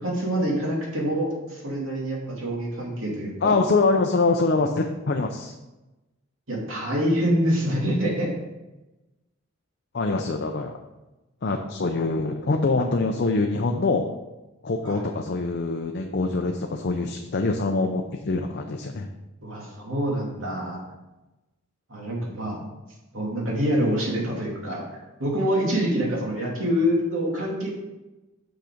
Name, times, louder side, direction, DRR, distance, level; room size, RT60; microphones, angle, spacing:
voice 1, 0.0-3.5 6.5-8.3 14.8-15.0 19.4-20.8 21.9-22.6 23.1-24.8 25.2-27.7, equal, 85° right, -3 dB, 2.5 m, -26 dB
voice 2, 3.4-5.5 9.9-10.7 11.4-14.0 14.6-19.1, left 3 dB, 55° left, 3 dB, 0.5 m, -24 dB
6.4 x 5.8 x 5.0 m, 1.0 s
head